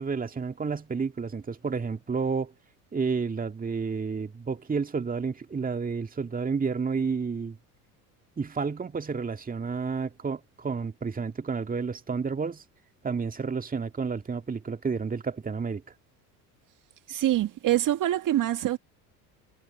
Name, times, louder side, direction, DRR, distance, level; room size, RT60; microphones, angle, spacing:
voice 1, 0.0-2.5 2.9-7.6 8.4-12.6 13.0-15.8, right 5 dB, 20° right, 2.1 m, -30 dB
voice 2, 17.1-18.8, right 13 dB, 40° right, 1.8 m, -25 dB
hypercardioid pair, 70°, 47 cm